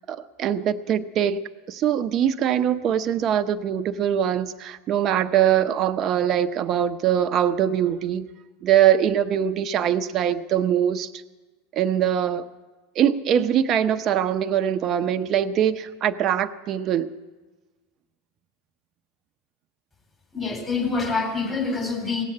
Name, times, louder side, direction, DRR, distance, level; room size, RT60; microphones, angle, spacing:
voice 1, 0.1-1.4 1.7-8.3 8.6-11.1 11.7-12.4 13.0-17.1, right 9 dB, 40° right, 0.6 m, -22 dB
voice 2, 20.3-22.2, left 4 dB, 20° left, 3.4 m, -26 dB
18.0 x 7.8 x 8.4 m
hypercardioid pair, 90°, 0 cm